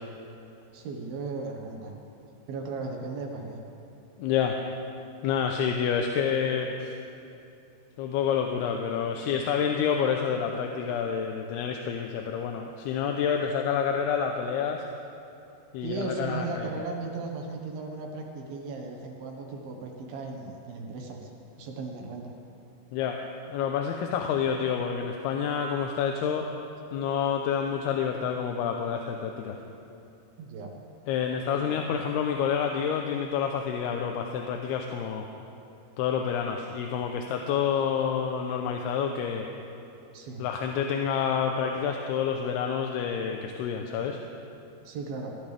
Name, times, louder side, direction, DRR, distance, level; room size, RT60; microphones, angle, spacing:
voice 1, 0.7-1.9 2.5-3.6 15.8-21.3 21.6-22.3 30.4-30.7 31.6-31.9 40.1-40.5 44.9-45.3, right 3 dB, 70° right, 1 dB, 3.2 m, -36 dB
voice 2, 4.2-4.6 5.2-7.0 8.0-14.8 15.7-16.9 22.9-23.2 23.5-26.5 26.9-29.6 31.1-35.3 36.0-39.5 40.4-44.2, left 7 dB, 85° left, 3 dB, 2.7 m, -28 dB
21.5 x 15.5 x 3.4 m, 2.8 s
omnidirectional pair, 4.6 m